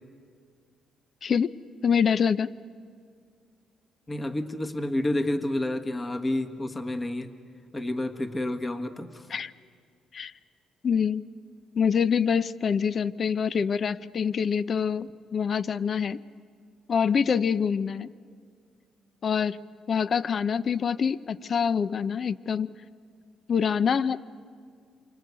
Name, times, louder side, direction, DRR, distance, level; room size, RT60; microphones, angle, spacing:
voice 1, 1.8-2.5 9.3-9.5 10.1-10.3 10.8-11.2 11.8-16.2 16.9-18.1 19.2-19.6 19.9-22.7 23.5-24.2, left 7 dB, 50° left, 15 dB, 0.6 m, -25 dB
voice 2, 4.1-7.3 7.7-9.3, left 1 dB, 25° left, 6 dB, 1.6 m, -29 dB
28.5 x 25.0 x 8.3 m, 2.1 s
cardioid pair, 90°, 0 cm